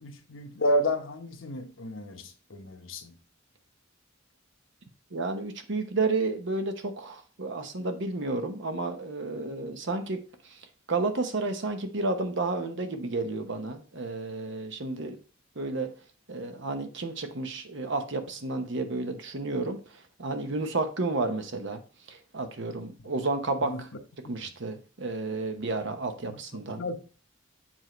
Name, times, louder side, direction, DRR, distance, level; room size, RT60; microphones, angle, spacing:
voice 1, 0.0-3.1 23.6-23.8 26.8-27.0, equal, 75° left, 1.0 m, -30 dB
voice 2, 5.1-10.2 10.5-10.6 10.9-15.2 15.6-15.9 16.3-19.8 20.2-21.8 22.1-23.9 24.3-26.8, right 3 dB, 65° right, 1.0 m, -31 dB
7.4 x 4.6 x 3.1 m
head